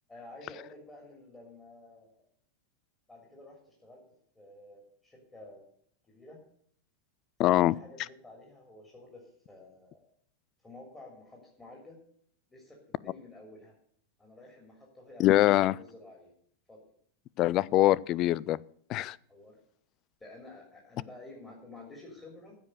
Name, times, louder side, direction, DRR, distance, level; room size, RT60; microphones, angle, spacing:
voice 1, 0.1-2.3 3.1-4.0 4.3-5.6 6.1-6.4 7.4-10.0 10.6-12.0 12.5-13.7 14.2-16.3 16.7-16.8 19.3-19.6 20.2-22.6, left 2 dB, 10° left, -1 dB, 3.3 m, -51 dB
voice 2, 7.4-7.7 15.2-15.7 17.4-18.6 18.9-19.2, left 15 dB, 35° left, 24 dB, 0.4 m, -23 dB
15.0 x 5.3 x 7.9 m, 0.62 s
figure-of-eight pair, 90°, 0 cm